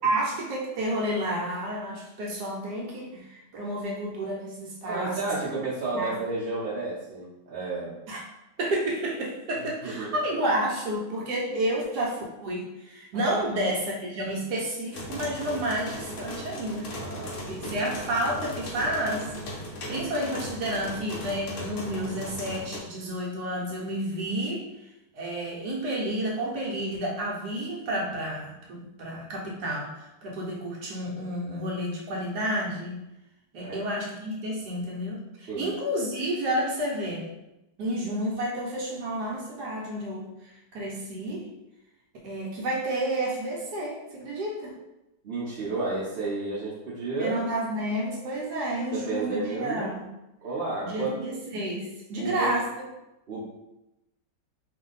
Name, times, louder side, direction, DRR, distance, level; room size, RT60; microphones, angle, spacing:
voice 1, 0.0-5.3 5.9-6.2 8.1-8.2 8.6-24.9 25.1-33.1 33.5-37.3 37.8-41.5 42.2-44.7 47.2-50.1 50.8-52.9, right 1 dB, 70° right, -3 dB, 1.1 m, -30 dB
voice 2, 4.8-8.0 9.8-10.1 13.1-13.5 16.9-17.8 33.6-33.9 35.5-35.7 45.2-47.4 48.9-49.9 50.4-51.2 52.2-52.5 53.3-53.4, right 3 dB, 50° right, -9 dB, 0.7 m, -32 dB
sound 1, 14.9-22.8, left 1 dB, 60° left, 0.9 m, -37 dB
2.7 x 2.6 x 3.8 m, 0.93 s
omnidirectional pair, 1.9 m